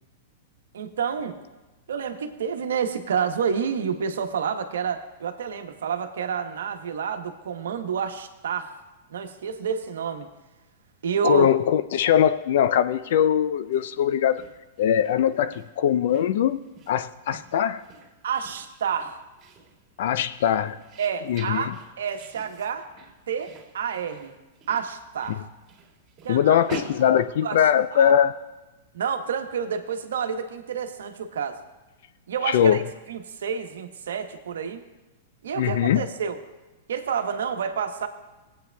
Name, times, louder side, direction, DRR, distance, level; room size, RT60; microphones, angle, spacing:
voice 1, 0.7-1.4 1.9-8.7 9.1-10.3 11.0-11.5 18.2-19.2 21.0-21.7 22.0-22.8 23.3-24.3 24.7-25.4 26.2-26.6 27.4-27.6 27.9-28.1 28.9-31.6 32.3-32.8 33.1-34.8 35.4-36.4 36.9-38.1, right 7 dB, 75° right, 6 dB, 1.0 m, -29 dB
voice 2, 11.2-14.4 14.8-16.6 16.9-17.8 20.0-20.8 21.3-21.8 25.3-25.4 26.3-28.3 32.5-32.8 35.6-36.1, left 9 dB, 65° left, 12 dB, 0.5 m, -21 dB
sound 1, 13.6-28.1, right 3 dB, 30° right, 2.3 m, -46 dB
19.5 x 8.3 x 2.3 m, 1.1 s
hypercardioid pair, 115°, 0 cm